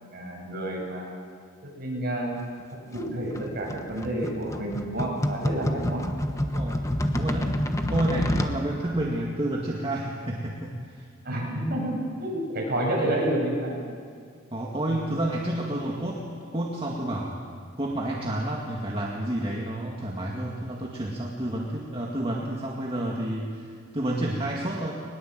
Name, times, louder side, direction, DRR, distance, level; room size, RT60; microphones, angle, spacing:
voice 1, 0.1-1.1 1.8-2.4 2.7-6.0 11.2-13.8 14.9-15.0, right 1 dB, 50° right, -2 dB, 7.3 m, -29 dB
sound 1, 2.9-8.6, equal, 15° left, 1.2 m, -28 dB
voice 2, 7.1-7.5 7.9-11.1 14.5-16.2 16.5-17.3 17.8-24.9, right 1 dB, 25° right, -2 dB, 2.0 m, -30 dB
21.0 x 21.0 x 7.7 m, 2.1 s
head